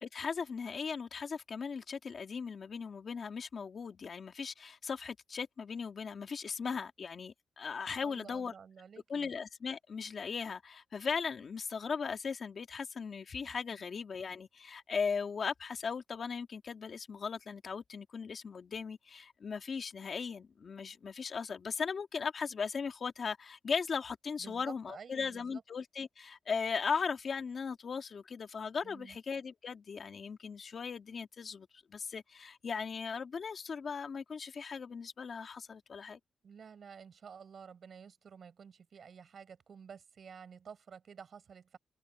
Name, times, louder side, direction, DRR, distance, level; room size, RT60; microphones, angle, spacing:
voice 1, 0.0-8.5 9.1-36.2, left 5 dB, 45° left, 2.2 m, -38 dB
voice 2, 8.0-9.3 24.4-25.6 28.8-29.2 36.4-41.8, right 6 dB, 50° right, 7.1 m, -52 dB
wide cardioid pair, 145°, 0 cm